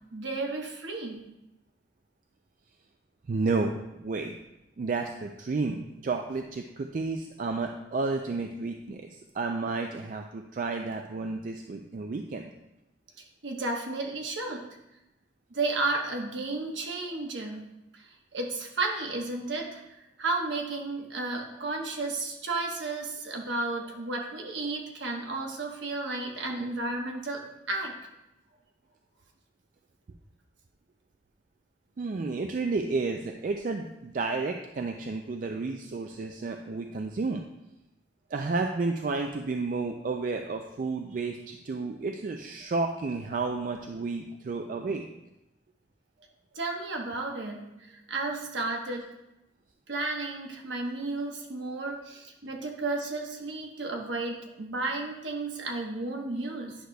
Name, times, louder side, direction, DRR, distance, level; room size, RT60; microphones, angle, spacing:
voice 1, 0.1-1.2 13.4-14.6 15.5-17.6 17.9-18.1 18.3-19.8 20.2-27.9 46.5-49.0 49.9-56.8, right 2 dB, 75° right, 1 dB, 1.1 m, -33 dB
voice 2, 3.3-4.4 4.8-12.5 32.0-37.4 38.3-45.0, right 3 dB, 45° right, 4 dB, 0.3 m, -31 dB
10.0 x 6.3 x 2.3 m, 0.92 s
head